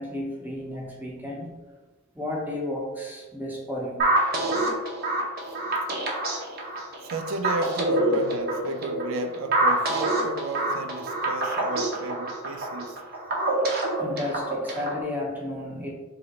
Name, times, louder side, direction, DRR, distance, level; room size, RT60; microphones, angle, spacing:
voice 1, 0.0-1.6 2.1-4.1 5.5-5.6 14.0-15.9, left 1 dB, 10° right, 0.7 m, -33 dB
sound 1, 4.0-15.0, right 1 dB, 50° right, 0.7 m, -26 dB
voice 2, 4.3-4.7 5.8-5.9 7.0-13.0, right 3 dB, 80° right, 0.3 m, -33 dB
3.8 x 3.0 x 2.8 m
head